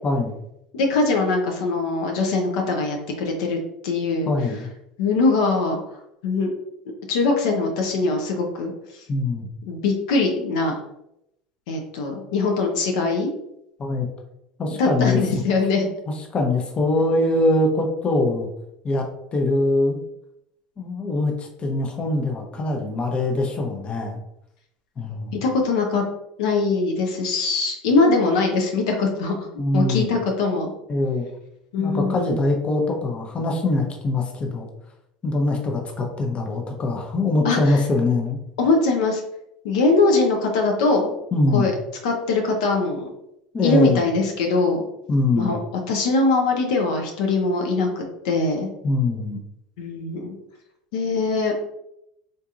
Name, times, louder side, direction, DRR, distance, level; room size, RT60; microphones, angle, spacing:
voice 1, 0.0-0.4 4.3-4.7 9.1-9.5 13.8-14.1 14.6-15.2 16.3-18.5 18.8-20.0 20.8-24.2 25.0-25.4 29.6-30.1 30.9-31.3 31.8-34.7 35.2-38.4 41.3-41.7 43.5-44.0 45.1-45.6 48.8-49.4, left 2 dB, 30° left, 2 dB, 0.7 m, -23 dB
voice 2, 0.7-3.6 3.8-4.3 5.0-5.8 6.2-6.5 7.1-9.0 9.7-10.7 11.7-13.3 14.7-15.9 25.4-26.0 26.4-29.5 29.7-30.7 31.7-32.3 37.4-37.8 38.6-39.2 39.6-41.1 41.5-41.7 42.0-43.1 43.6-44.8 45.4-45.6 45.9-48.7 49.8-50.4 50.9-51.7, left 3 dB, 75° left, 2 dB, 0.6 m, -22 dB
3.7 x 2.7 x 2.4 m, 0.80 s
hypercardioid pair, 85°, 4 cm